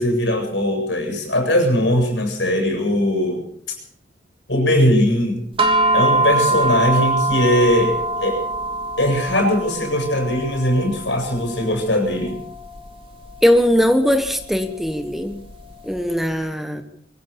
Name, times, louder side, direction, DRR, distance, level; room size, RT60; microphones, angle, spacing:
voice 1, 0.0-3.8 4.5-5.4 5.9-8.4 9.0-12.3, left 1 dB, 70° left, 4 dB, 7.9 m, -20 dB
sound 1, 5.6-16.1, right 2 dB, 30° right, 3.4 m, -24 dB
voice 2, 13.4-15.4 15.8-16.8, equal, ahead, 8 dB, 1.2 m, -19 dB
23.5 x 15.5 x 7.1 m, 0.66 s
head